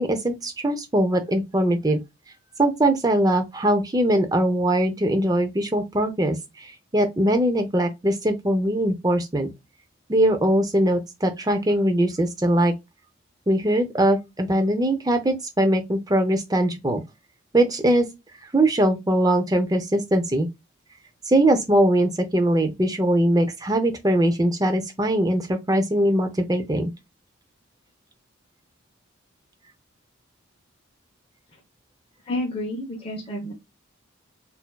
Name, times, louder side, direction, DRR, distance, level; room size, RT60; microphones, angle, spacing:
voice 1, 0.0-2.0 2.6-9.5 10.1-12.7 13.5-17.0 17.5-18.1 18.5-20.5 21.3-26.9, right 1 dB, 20° right, 0.6 m, -21 dB
voice 2, 32.3-33.5, left 1 dB, 25° left, 0.8 m, -29 dB
4.3 x 2.7 x 2.2 m
head